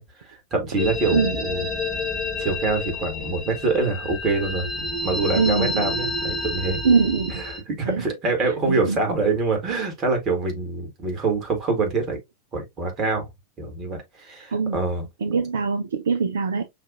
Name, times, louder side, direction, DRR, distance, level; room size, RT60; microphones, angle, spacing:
voice 1, 0.3-1.7 2.4-4.7 5.0-6.8 7.5-12.2 12.5-13.3 13.6-15.0, right 3 dB, 30° right, 1.6 m, -25 dB
sound 1, 0.8-7.6, left 2 dB, 10° left, 1.2 m, -29 dB
voice 2, 5.4-5.8 6.8-7.4 7.9-8.1 8.4-9.0 14.5-14.8 15.2-16.6, right 5 dB, 65° right, 0.4 m, -23 dB
5.6 x 2.4 x 2.4 m
figure-of-eight pair, 90°, 0 cm